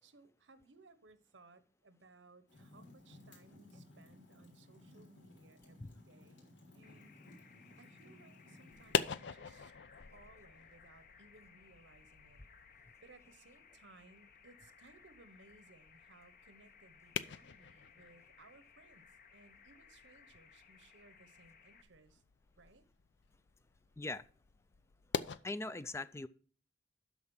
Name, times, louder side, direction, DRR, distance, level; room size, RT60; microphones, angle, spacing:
voice 1, 0.0-7.3 7.8-12.4 13.0-22.2 22.6-22.9, right 3 dB, 85° right, 1.1 m, -63 dB
Fire, 2.5-9.0, left 1 dB, 90° left, 4.1 m, -59 dB
sound 1, 6.8-21.8, left 6 dB, 50° left, 0.9 m, -62 dB
sound 2, 8.7-25.4, left 6 dB, 70° left, 0.5 m, -45 dB
voice 2, 25.4-26.3, left 2 dB, 15° left, 0.3 m, -40 dB
12.5 x 4.9 x 5.5 m
head